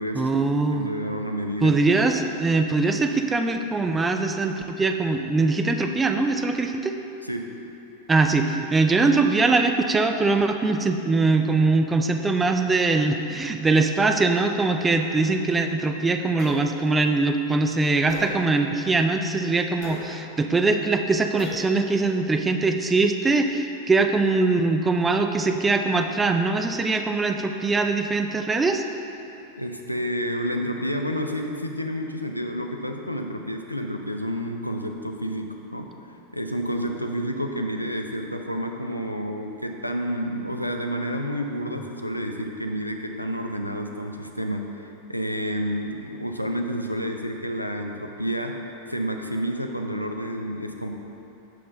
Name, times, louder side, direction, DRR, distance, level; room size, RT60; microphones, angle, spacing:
voice 1, 0.1-0.9 1.6-7.0 8.1-28.8, right 3 dB, 15° right, 6 dB, 0.4 m, -22 dB
voice 2, 0.7-1.8 7.2-7.5 29.6-35.9 36.3-48.5 48.9-50.9, equal, 90° left, 3 dB, 0.5 m, -29 dB
sound 1, 16.4-16.7 18.1-18.3 19.8-20.0 21.4-21.7, left 2 dB, 40° left, 1.5 m, -36 dB
7.6 x 5.6 x 3.8 m, 3.0 s
figure-of-eight pair, 90°, 0 cm